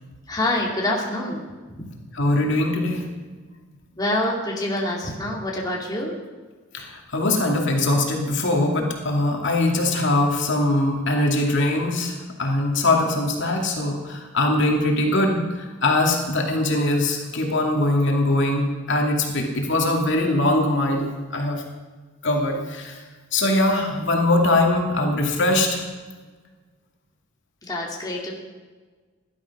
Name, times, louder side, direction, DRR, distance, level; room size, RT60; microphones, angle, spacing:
voice 1, 0.3-1.4 1.8-1.9 4.0-6.1 27.6-28.3, left 1 dB, 20° left, -2 dB, 2.3 m, -26 dB
voice 2, 2.1-3.0 6.7-12.1 12.4-21.6 22.2-23.0 23.3-25.8, left 2 dB, 60° left, 1 dB, 2.4 m, -22 dB
16.0 x 12.0 x 6.0 m, 1.4 s
head